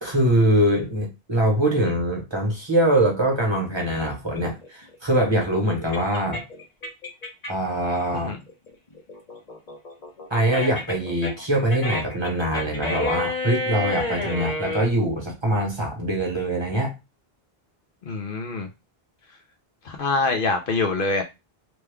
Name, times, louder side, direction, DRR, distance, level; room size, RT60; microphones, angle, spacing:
voice 1, 0.0-6.4 7.5-8.3 10.3-16.9, right 1 dB, 30° right, 0.9 m, -23 dB
sound 1, 4.3-7.7 8.1-14.9, left 2 dB, 45° left, 0.9 m, -30 dB
voice 2, 18.1-18.7 19.8-21.2, left 3 dB, 65° left, 0.7 m, -25 dB
3.0 x 2.3 x 3.3 m
omnidirectional pair, 1.0 m